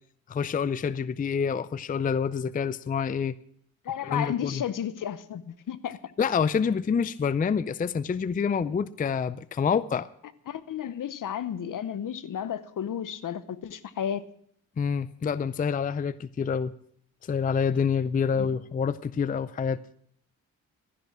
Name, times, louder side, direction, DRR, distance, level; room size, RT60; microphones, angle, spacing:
voice 1, 0.3-3.4 4.0-4.6 6.2-10.1 14.8-16.7 17.2-19.8, left 6 dB, 25° left, 0.4 m, -27 dB
voice 2, 3.8-6.0 8.7-8.8 10.5-14.2 18.3-18.5, left 9 dB, 60° left, 0.9 m, -33 dB
13.0 x 10.5 x 6.0 m
cardioid pair, 75°, 36 cm